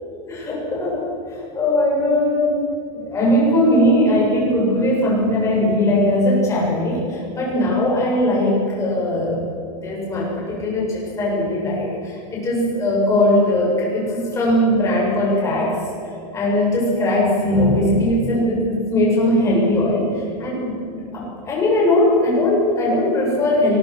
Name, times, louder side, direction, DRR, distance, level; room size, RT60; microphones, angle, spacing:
voice 1, 0.3-2.6 2.9-9.4 9.8-15.8 16.3-23.8, left 1 dB, 15° left, -4 dB, 7.7 m, -19 dB
24.0 x 21.0 x 6.3 m, 2.7 s
supercardioid pair, 170°, 21 cm